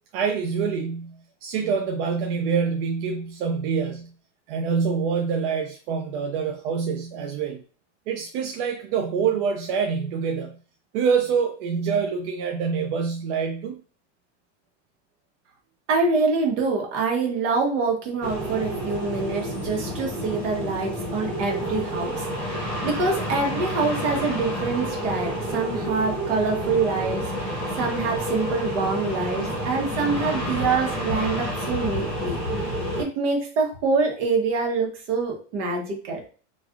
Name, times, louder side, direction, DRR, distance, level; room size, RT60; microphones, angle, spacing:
voice 1, 0.1-4.1 4.5-7.6 8.1-10.6 10.9-13.7, right 6 dB, 55° right, 3 dB, 0.5 m, -26 dB
voice 2, 15.9-22.6 22.8-36.3, right 4 dB, 75° right, 0 dB, 1.2 m, -26 dB
sound 1, 18.2-33.0, equal, 5° left, 0.9 m, -29 dB
3.2 x 2.4 x 2.4 m, 0.39 s
supercardioid pair, 145°, 36 cm